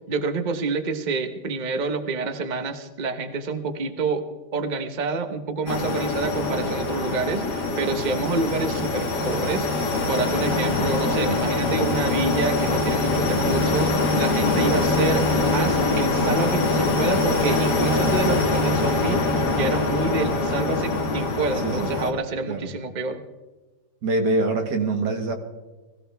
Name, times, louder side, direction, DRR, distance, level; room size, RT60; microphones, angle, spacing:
voice 1, 0.1-4.2 4.5-23.2, right 3 dB, 30° right, 8 dB, 1.0 m, -28 dB
sound 1, 5.7-22.1, left 3 dB, 75° left, 2.2 m, -23 dB
voice 2, 24.0-25.3, right 2 dB, 80° right, 4 dB, 2.2 m, -24 dB
21.0 x 15.5 x 3.4 m, 1.2 s
omnidirectional pair, 1.8 m